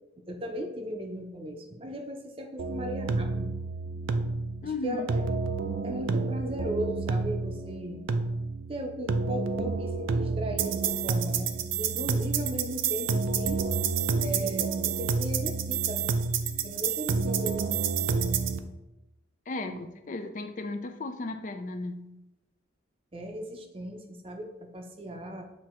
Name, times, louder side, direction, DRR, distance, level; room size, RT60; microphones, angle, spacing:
voice 1, 0.3-3.5 4.6-5.2 5.8-8.0 8.7-11.5 11.8-13.6 14.2-16.1 16.6-18.3 19.7-19.8 23.1-25.4, right 1 dB, 30° right, 4 dB, 0.6 m, -37 dB
sound 1, 2.6-18.6, right 5 dB, 85° right, 0.4 m, -29 dB
voice 2, 4.6-5.1 19.5-22.1, left 2 dB, 40° left, 7 dB, 0.4 m, -35 dB
7.8 x 2.8 x 4.3 m, 0.95 s
head